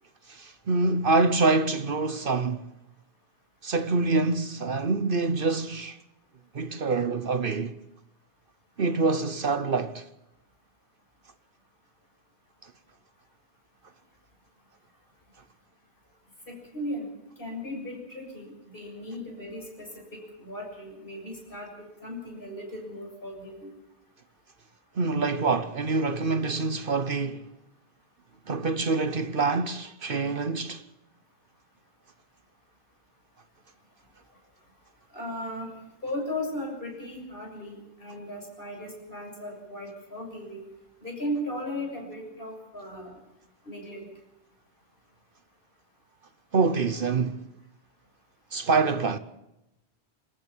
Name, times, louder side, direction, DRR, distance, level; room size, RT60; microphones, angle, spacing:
voice 1, 0.3-2.6 3.6-6.0 6.5-7.8 8.8-10.0 25.0-27.4 28.5-30.8 46.5-47.5 48.5-49.2, right 3 dB, 55° right, 1.0 m, -26 dB
voice 2, 16.5-17.1 17.4-21.7 22.0-23.7 35.1-35.7 36.0-40.6 41.0-43.2 43.6-44.1, left 1 dB, 55° left, 7.3 m, -36 dB
26.5 x 14.0 x 7.2 m
omnidirectional pair, 1.1 m